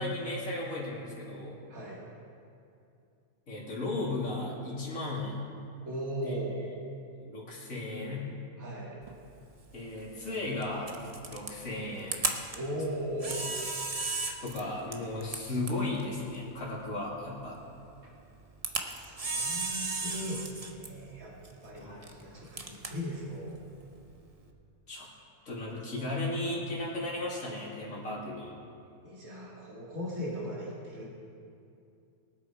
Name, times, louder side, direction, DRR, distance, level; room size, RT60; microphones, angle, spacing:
voice 1, 0.0-1.6 3.5-5.5 6.2-6.4 7.2-8.3 9.7-11.0 11.3-12.3 14.4-17.6 21.8-22.1 24.9-25.1 25.4-28.6, left 2 dB, 65° left, -5 dB, 3.0 m, -35 dB
voice 2, 1.7-2.1 5.9-6.7 8.6-9.0 12.6-13.5 18.8-21.4 21.6-23.5 29.0-31.0, equal, 70° right, -5 dB, 2.8 m, -38 dB
Camera, 9.0-24.5, right 3 dB, 30° right, 0.9 m, -38 dB
22.5 x 8.2 x 4.8 m, 2.6 s
omnidirectional pair, 1.5 m